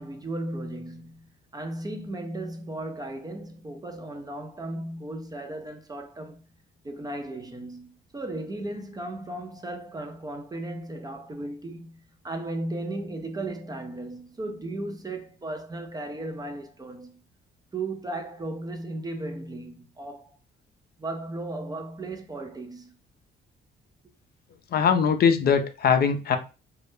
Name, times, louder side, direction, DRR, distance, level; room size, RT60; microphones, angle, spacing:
voice 1, 0.0-6.5 6.8-17.2 17.7-20.4 21.0-23.0, right 2 dB, 20° right, 0.4 m, -36 dB
voice 2, 24.7-26.4, left 6 dB, 50° left, 0.4 m, -21 dB
2.3 x 2.0 x 3.0 m
cardioid pair, 90°, 20 cm